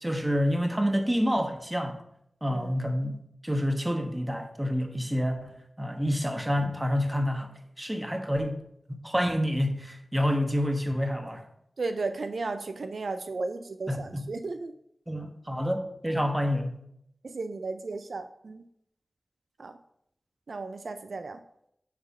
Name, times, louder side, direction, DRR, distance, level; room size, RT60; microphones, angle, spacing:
voice 1, 0.0-2.0 2.4-7.5 7.8-8.6 8.9-11.4 13.9-14.3 15.1-16.7, equal, 15° right, 5 dB, 1.2 m, -28 dB
voice 2, 11.8-14.7 17.2-18.6 19.6-19.7 20.5-21.4, right 3 dB, 80° right, 9 dB, 0.4 m, -34 dB
9.5 x 4.1 x 4.1 m, 0.75 s
cardioid pair, 45°, 0 cm